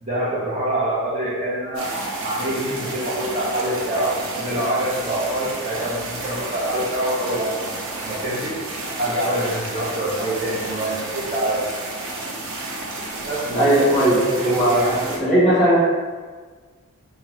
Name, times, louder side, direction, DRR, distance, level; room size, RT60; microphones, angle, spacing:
voice 1, 0.0-7.7 8.0-8.5 9.0-11.7 13.3-13.7 14.0-15.0, right 1 dB, 30° right, -6 dB, 0.9 m, -25 dB
sound 1, 1.7-15.2, right 2 dB, 60° right, 0.6 m, -31 dB
voice 2, 13.6-15.8, right 1 dB, ahead, -11 dB, 1.3 m, -18 dB
3.8 x 2.9 x 3.0 m, 1.4 s
head